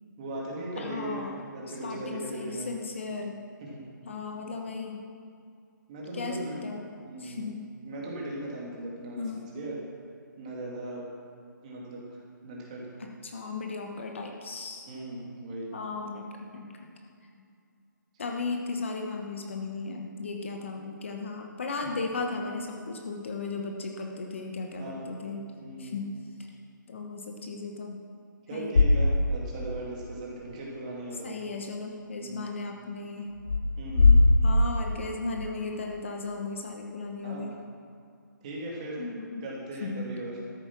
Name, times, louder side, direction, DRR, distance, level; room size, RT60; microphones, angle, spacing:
voice 1, 0.2-2.7 3.7-3.8 5.9-6.6 7.0-7.5 7.8-9.2 9.5-9.8 10.4-11.1 11.6-12.8 14.9-15.7 24.8-25.1 25.6-26.0 28.5-31.3 32.2-32.5 33.8-34.3 37.2-37.5 38.4-39.0 39.4-40.3, right 1 dB, 20° right, -4 dB, 2.3 m, -38 dB
voice 2, 0.7-1.3 1.8-3.4 4.0-5.0 6.1-6.9 7.2-7.7 9.2-9.5 13.0-14.9 15.7-16.7 18.2-25.5 25.8-26.1 26.4-26.5 26.9-28.0 28.5-28.8 31.2-33.3 34.4-37.6 39.0-39.4 39.8-40.1, left 3 dB, 35° left, 2 dB, 1.0 m, -36 dB
sound 1, 28.7-29.7 30.1-30.2 33.3-35.4, left 2 dB, 85° left, 1.7 m, -21 dB
13.0 x 9.7 x 6.0 m, 2.4 s
hypercardioid pair, 170°, 11 cm